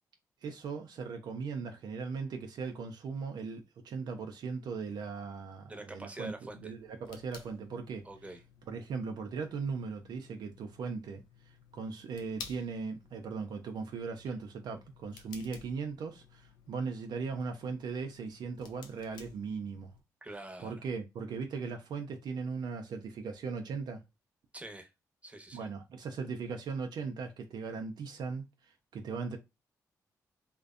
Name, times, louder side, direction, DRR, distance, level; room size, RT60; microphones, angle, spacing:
voice 1, 0.4-8.0 8.7-19.9 20.6-24.0 25.5-29.4, right 5 dB, 70° right, 0.4 m, -38 dB
voice 2, 5.7-6.7 8.0-8.4 20.2-20.7 24.5-24.9 25.2-25.7, right 2 dB, 15° right, 0.8 m, -45 dB
sound 1, 6.5-20.0, left 5 dB, 85° left, 0.4 m, -55 dB
2.5 x 2.1 x 2.4 m
supercardioid pair, 50°, 8 cm